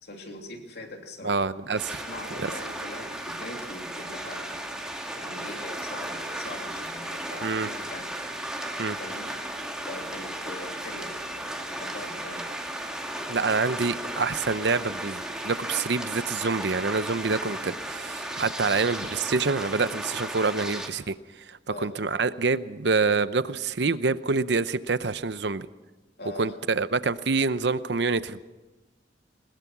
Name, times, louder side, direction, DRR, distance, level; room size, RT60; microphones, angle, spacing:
voice 1, 0.0-1.4 2.0-4.6 5.1-8.2 9.0-9.3 9.9-12.5 21.7-21.9 26.2-26.5, left 1 dB, 60° left, 3 dB, 3.0 m, -42 dB
voice 2, 1.2-2.0 2.4-2.5 7.4-7.7 8.8-9.0 13.3-21.2 21.5-25.7 26.4-28.4, right 4 dB, 65° right, 14 dB, 0.7 m, -26 dB
sound 1, 1.8-20.9, right 1 dB, 5° right, 2.0 m, -35 dB
21.0 x 20.5 x 6.1 m, 1.1 s
head